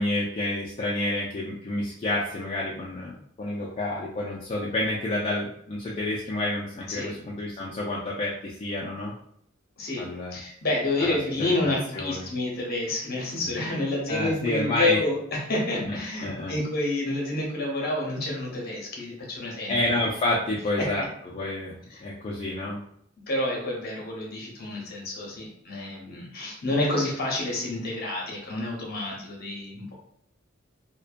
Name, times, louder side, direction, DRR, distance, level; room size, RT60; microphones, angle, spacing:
voice 1, 0.0-9.1 10.0-10.4 11.0-12.3 14.1-15.0 15.8-16.6 19.7-21.0 21.3-21.7 22.0-22.8, left 1 dB, 30° left, -5 dB, 0.3 m, -29 dB
voice 2, 9.8-19.8 20.8-21.1 21.9-22.0 23.3-29.9, left 2 dB, 50° left, -2 dB, 0.8 m, -29 dB
2.6 x 2.1 x 2.4 m, 0.68 s
head